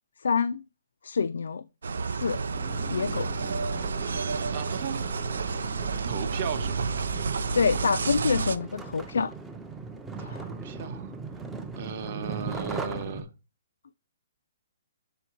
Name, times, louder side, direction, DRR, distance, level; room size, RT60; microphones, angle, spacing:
voice 1, 0.2-0.6 1.0-1.6 2.1-2.4 2.9-3.3 7.5-9.3 10.2-10.5, left 5 dB, 90° left, 0.3 m, -27 dB
sound 1, 1.8-8.6, right 4 dB, 85° right, 0.5 m, -30 dB
sound 2, 2.5-13.2, right 4 dB, 5° right, 0.5 m, -40 dB
voice 2, 4.5-5.2 6.0-6.9 10.2-11.2 11.7-13.3, right 6 dB, 35° right, 0.8 m, -35 dB
7.0 x 3.8 x 4.5 m
hypercardioid pair, 175°, 0 cm